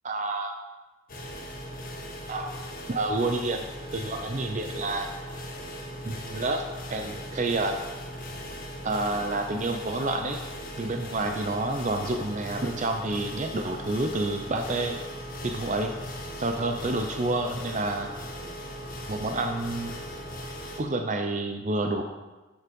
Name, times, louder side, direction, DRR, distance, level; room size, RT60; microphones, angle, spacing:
voice 1, 0.0-0.5 2.3-2.5 2.9-3.6 3.9-5.1 6.0-6.6 6.9-7.7 8.8-10.4 10.8-15.0 15.4-15.9 16.4-18.1 19.1-19.9 20.8-22.0, right 2 dB, 35° right, 4 dB, 0.6 m, -29 dB
sound 1, 1.1-20.8, equal, 40° left, 1.5 m, -39 dB
9.8 x 7.1 x 5.3 m, 1.2 s
head